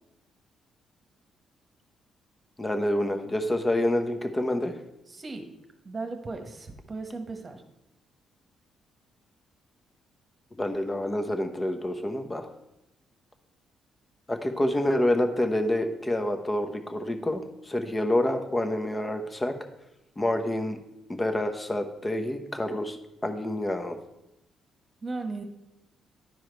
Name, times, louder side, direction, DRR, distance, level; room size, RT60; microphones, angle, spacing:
voice 1, 2.6-4.7 10.6-12.5 14.3-19.5 20.2-20.8 21.1-24.0, left 1 dB, 20° left, 6 dB, 1.0 m, -27 dB
voice 2, 5.1-5.4 5.8-7.6 25.0-25.4, right 3 dB, 35° right, 6 dB, 1.3 m, -36 dB
10.5 x 4.8 x 4.6 m, 0.91 s
cardioid pair, 75°, 0 cm